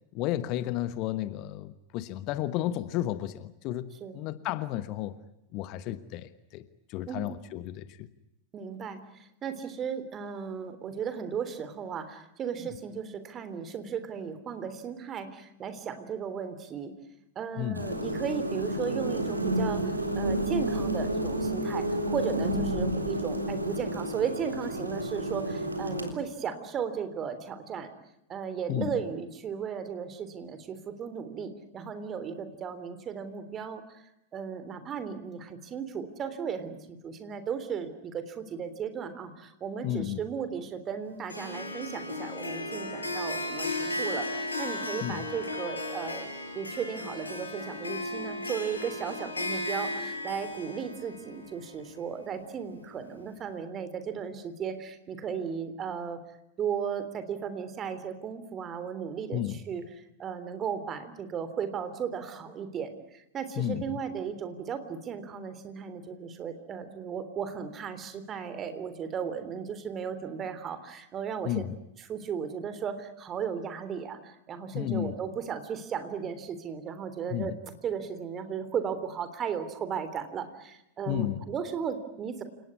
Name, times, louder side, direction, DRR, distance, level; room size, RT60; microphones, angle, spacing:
voice 1, 0.1-5.2 5.5-8.1 17.6-17.9 28.7-29.0 39.8-40.2 45.0-45.2 59.3-59.6 63.6-63.8 71.4-71.7 74.7-75.1 77.3-77.6 81.1-81.4, left 13 dB, 40° left, 14 dB, 1.2 m, -32 dB
voice 2, 8.5-16.9 17.4-27.9 28.3-34.0 34.3-46.3 46.5-56.2 56.6-59.8 60.2-71.6 72.0-82.4, right 7 dB, 25° right, 11 dB, 3.4 m, -35 dB
sound 1, 17.7-26.1, right 1 dB, 85° right, 3.7 m, -30 dB
Harp, 41.3-52.5, left 2 dB, 80° left, 5.7 m, -35 dB
29.0 x 18.5 x 9.7 m, 0.88 s
figure-of-eight pair, 90°, 0 cm